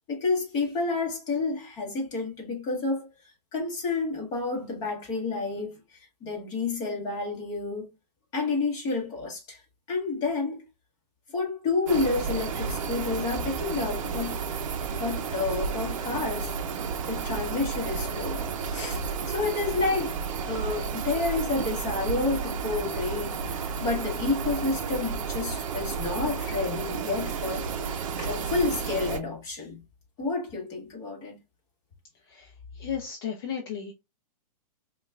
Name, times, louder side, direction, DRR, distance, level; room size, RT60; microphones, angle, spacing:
voice 1, 0.1-3.1 3.5-5.8 6.2-7.9 8.3-9.6 9.9-10.6 11.3-14.4 14.9-16.5 17.1-20.2 20.4-27.8 28.2-29.8 30.2-31.4, left 3 dB, 20° left, 1.2 m, -30 dB
sound 1, 11.9-29.2, right 5 dB, 55° right, 0.6 m, -32 dB
voice 2, 32.8-33.9, left 8 dB, 35° left, 0.6 m, -34 dB
5.1 x 2.3 x 2.3 m
hypercardioid pair, 165°, 20 cm